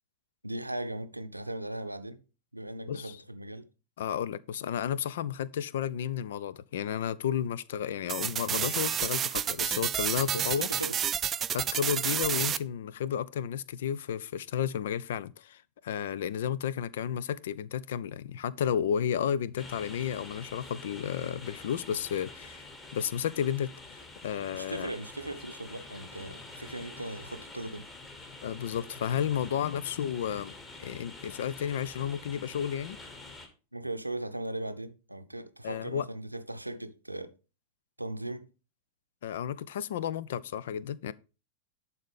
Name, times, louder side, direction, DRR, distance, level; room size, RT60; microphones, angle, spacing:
voice 1, 0.4-2.2 2.5-3.7 10.3-11.0 24.5-27.8 33.7-37.3 38.0-38.5, right 1 dB, 85° right, 0.7 m, -38 dB
voice 2, 4.0-10.7 11.5-22.7 22.9-23.7 24.2-24.9 28.4-33.0 35.6-36.1 39.2-41.1, left 9 dB, 60° left, 0.5 m, -32 dB
sound 1, 8.1-12.6, right 9 dB, 25° right, 0.4 m, -30 dB
sound 2, 19.6-33.5, left 2 dB, 20° left, 2.0 m, -47 dB
11.5 x 4.2 x 5.1 m
figure-of-eight pair, 90°, 0 cm